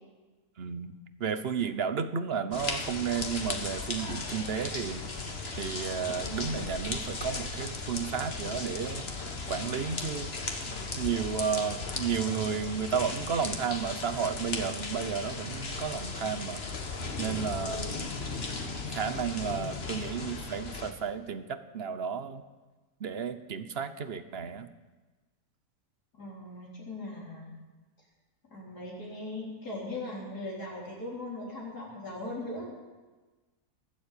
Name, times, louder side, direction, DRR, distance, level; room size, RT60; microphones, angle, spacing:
voice 1, 0.6-0.9 1.2-5.0 5.6-10.3 11.0-16.7 17.2-18.0 18.9-22.4 23.0-24.7, right 7 dB, 45° right, 11 dB, 1.0 m, -32 dB
sound 1, 2.5-20.9, left 3 dB, 40° left, 1.6 m, -36 dB
voice 2, 26.1-27.5 28.5-32.7, left 2 dB, 85° left, -4 dB, 4.7 m, -39 dB
21.5 x 7.6 x 8.5 m, 1.2 s
omnidirectional pair, 1.6 m